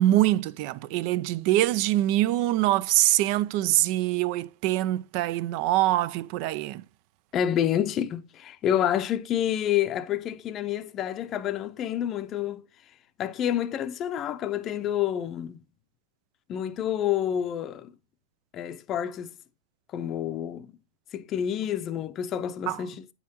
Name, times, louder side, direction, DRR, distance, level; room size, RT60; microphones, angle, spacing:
voice 1, 0.0-6.8 22.7-22.8, right 15 dB, 45° right, 0.5 m, -24 dB
voice 2, 7.3-12.7 13.2-15.6 16.5-17.9 18.5-19.3 19.9-20.7 21.1-23.1, left 10 dB, 30° left, 0.6 m, -28 dB
9.3 x 5.6 x 2.9 m
hypercardioid pair, 140°, 0 cm